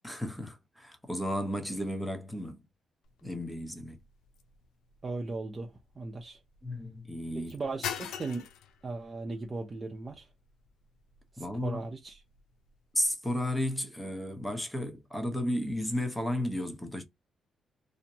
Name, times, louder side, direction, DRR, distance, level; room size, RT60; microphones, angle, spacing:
voice 1, 0.0-2.6 3.2-4.0 6.6-7.5 11.4-11.8 12.9-17.0, left 1 dB, 5° left, 0.8 m, -33 dB
sound 1, 3.0-13.1, left 9 dB, 85° left, 0.4 m, -46 dB
voice 2, 5.0-6.4 7.5-8.4 8.8-10.3 11.3-12.2, right 3 dB, 30° right, 0.6 m, -37 dB
2.6 x 2.1 x 2.7 m
cardioid pair, 85°, 0 cm